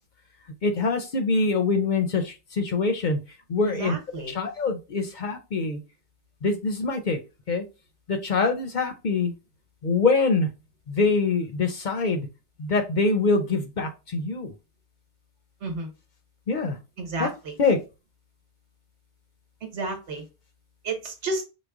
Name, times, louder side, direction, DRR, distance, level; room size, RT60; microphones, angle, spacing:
voice 1, 0.6-3.2 3.5-4.0 4.3-5.8 6.4-7.2 7.5-7.6 8.1-9.3 9.8-10.5 10.9-12.3 12.6-14.5 16.5-16.8 17.2-17.3 17.6-17.8, left 3 dB, 55° left, 0.6 m, -24 dB
voice 2, 3.6-4.3 15.6-15.9 17.0-17.5 19.6-20.2 20.8-21.4, right 3 dB, 90° right, 1.4 m, -31 dB
4.9 x 2.1 x 3.5 m
omnidirectional pair, 1.1 m